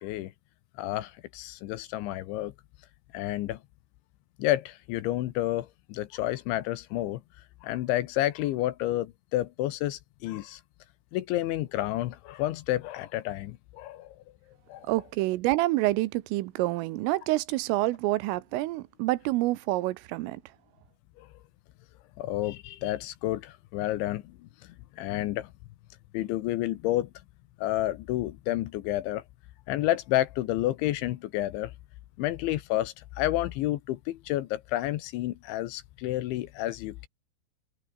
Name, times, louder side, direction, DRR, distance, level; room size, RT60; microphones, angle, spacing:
voice 1, 0.0-0.3 0.8-2.5 3.1-3.6 4.4-7.2 7.6-10.6 11.1-14.2 14.7-14.9 21.2-21.3 22.2-24.4 24.6-25.5 26.1-27.1 27.6-29.2 29.7-31.7 32.2-37.1, left 15 dB, 75° left, 3.2 m, -30 dB
voice 2, 14.8-20.4, right 18 dB, 80° right, 3.5 m, -27 dB
omnidirectional pair, 5.9 m